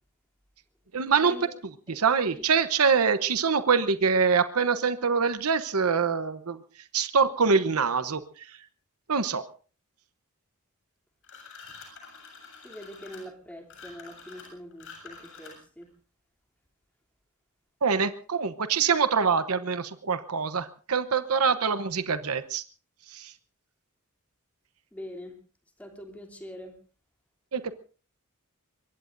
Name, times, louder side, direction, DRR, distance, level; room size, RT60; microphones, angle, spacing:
voice 1, 0.9-1.4 2.0-6.6 6.9-8.6 9.1-9.4 17.8-22.6 23.1-23.3 27.5-27.7, right 5 dB, 75° right, 11 dB, 1.0 m, -25 dB
sound 1, 11.2-15.8, left 5 dB, 60° left, 7.3 m, -47 dB
voice 2, 12.6-15.9 24.9-25.4 25.8-26.8, equal, 5° left, 2 dB, 3.0 m, -43 dB
24.5 x 22.5 x 2.6 m, 0.39 s
head